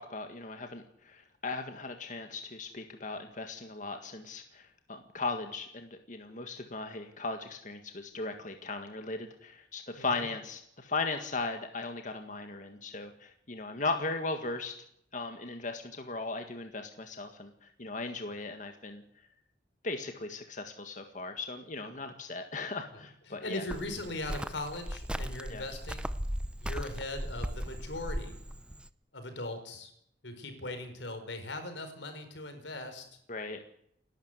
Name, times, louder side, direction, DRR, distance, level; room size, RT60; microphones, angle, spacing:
voice 1, 0.0-14.7 15.1-17.5 17.8-19.0 19.8-23.6 25.5-25.6 33.3-33.6, left 3 dB, 45° left, 5 dB, 1.8 m, -37 dB
voice 2, 9.9-10.3 22.9-26.1 26.6-28.3 29.1-29.9 30.2-33.0, left 2 dB, 85° left, 8 dB, 4.8 m, -40 dB
Cricket, 23.7-28.9, equal, 5° right, 0.7 m, -37 dB
29.5 x 12.0 x 8.2 m, 0.71 s
head